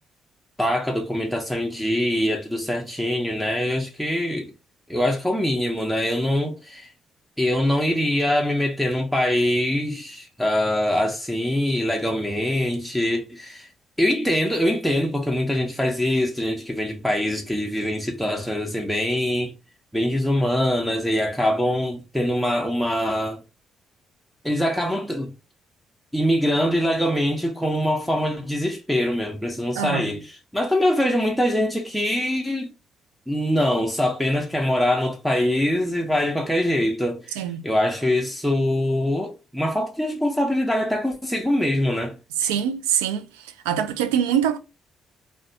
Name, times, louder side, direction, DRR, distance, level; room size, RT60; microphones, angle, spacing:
voice 1, 0.6-4.5 4.9-6.9 7.4-13.7 14.0-19.5 19.9-23.4 24.4-25.3 26.1-32.7 33.3-42.2, left 1 dB, ahead, 0.7 m, -23 dB
voice 2, 29.7-30.1 37.4-37.6 42.4-44.6, right 9 dB, 90° right, 0.4 m, -24 dB
2.4 x 2.2 x 2.7 m
hypercardioid pair, 50°, 0 cm